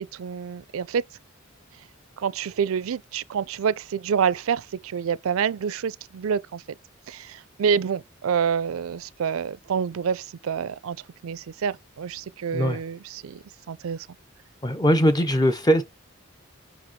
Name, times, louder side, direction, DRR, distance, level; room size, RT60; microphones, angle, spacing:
voice 1, 0.1-1.0 2.2-6.6 7.1-11.0 11.2-14.1, right 7 dB, 75° right, 0.4 m, -27 dB
voice 2, 14.6-15.8, equal, 20° left, 0.5 m, -20 dB
5.9 x 5.0 x 4.4 m
head